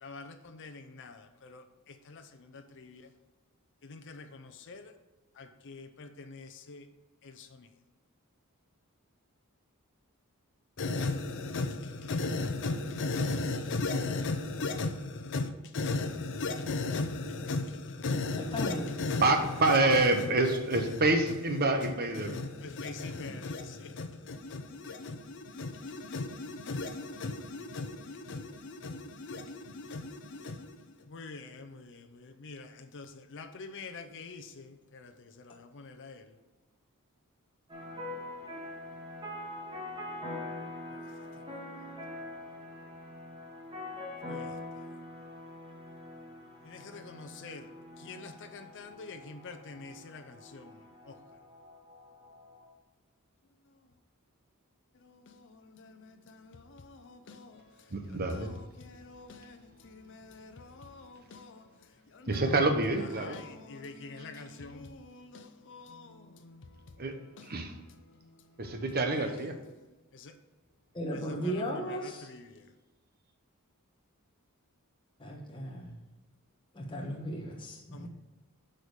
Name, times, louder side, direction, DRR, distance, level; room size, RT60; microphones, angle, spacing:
voice 1, 0.0-3.1 3.8-4.9 5.4-6.9 7.2-7.7 10.8-19.3 19.6-21.0 21.3-21.4 21.8-36.3 40.9-41.0 44.3-44.5 46.6-47.7 48.0-50.8 51.1-51.2 55.0-57.9 58.2-61.7 62.1-62.4 63.2-67.0 67.4-67.5 68.0-68.4 68.6-68.8 69.1-69.3 70.1-70.3 71.1-72.6 77.9-78.1, left 3 dB, 55° left, 0.6 m, -39 dB
voice 2, 18.5-18.9 23.3-23.4 70.9-72.3 75.2-76.0 76.7-78.1, equal, 20° left, 1.1 m, -36 dB
voice 3, 19.2-22.4 57.9-58.5 62.3-63.4 67.0-67.1 67.4-67.7 68.6-69.6, right 2 dB, 45° right, 1.0 m, -27 dB
sound 1, 37.7-52.7, left 1 dB, 25° right, 1.8 m, -44 dB
8.4 x 5.2 x 4.8 m
head